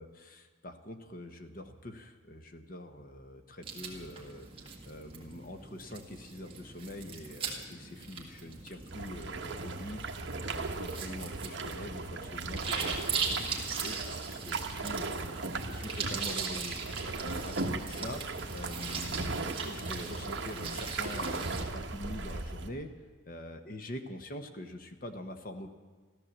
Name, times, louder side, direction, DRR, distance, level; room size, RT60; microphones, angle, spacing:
voice 1, 0.0-10.0 10.4-15.2 15.6-16.8 17.1-18.2 18.5-22.9 23.3-25.7, left 1 dB, 45° left, 7 dB, 1.0 m, -44 dB
sound 1, 3.6-21.6, right 5 dB, 25° right, 1.7 m, -40 dB
sound 2, 8.9-22.7, right 3 dB, 60° right, 1.1 m, -37 dB
14.0 x 12.5 x 7.3 m, 1.5 s
head